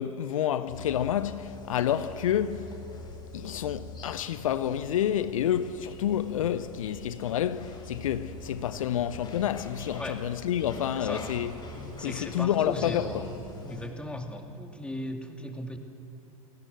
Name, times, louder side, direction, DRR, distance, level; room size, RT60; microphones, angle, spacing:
voice 1, 0.0-2.8 3.3-11.5 12.0-13.2, left 10 dB, 65° left, 0.8 m, -29 dB
sound 1, 0.7-13.9, left 2 dB, 25° left, 5.4 m, -43 dB
voice 2, 12.0-13.4 13.7-15.8, left 1 dB, 5° left, 2.5 m, -37 dB
29.5 x 18.5 x 7.8 m
figure-of-eight pair, 90°, 18 cm